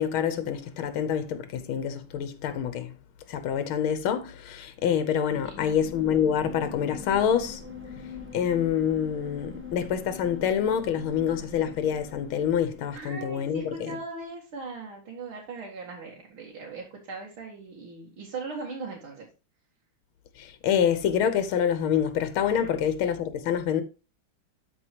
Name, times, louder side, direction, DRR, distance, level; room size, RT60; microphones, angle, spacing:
voice 1, 0.0-2.9 3.3-7.6 8.3-14.0 20.4-23.8, left 8 dB, 90° left, 1.7 m, -26 dB
sound 1, 5.3-13.1, left 4 dB, 10° right, 0.9 m, -43 dB
voice 2, 12.9-19.3, right 3 dB, 90° right, 2.6 m, -39 dB
12.5 x 4.9 x 2.9 m
omnidirectional pair, 2.2 m